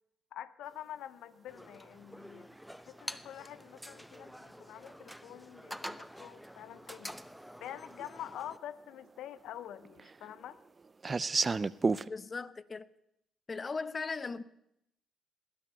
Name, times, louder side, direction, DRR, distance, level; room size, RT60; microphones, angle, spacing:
voice 1, 0.3-7.2 7.6-10.6, left 11 dB, 70° left, 0.8 m, -46 dB
sound 1, 1.5-8.6, equal, ahead, 0.8 m, -47 dB
sound 2, 5.5-5.6 6.9-7.0 7.5-7.6 7.8-8.5 8.8-12.1, right 4 dB, 35° right, 0.5 m, -32 dB
voice 2, 12.1-12.9 13.5-14.4, left 4 dB, 35° left, 0.9 m, -38 dB
19.0 x 10.0 x 6.6 m
hypercardioid pair, 45°, 0 cm